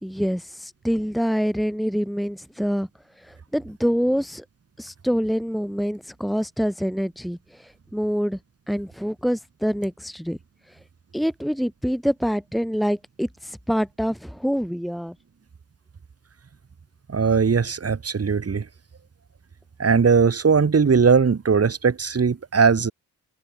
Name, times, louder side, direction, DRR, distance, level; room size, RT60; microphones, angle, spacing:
voice 1, 0.0-2.9 3.2-4.4 4.8-8.4 8.7-10.4 10.7-10.8 11.1-15.1, equal, ahead, 3.3 m, -26 dB
voice 2, 17.1-18.6 19.8-22.9, right 5 dB, 45° right, 3.7 m, -19 dB
cardioid pair, 65°, 33 cm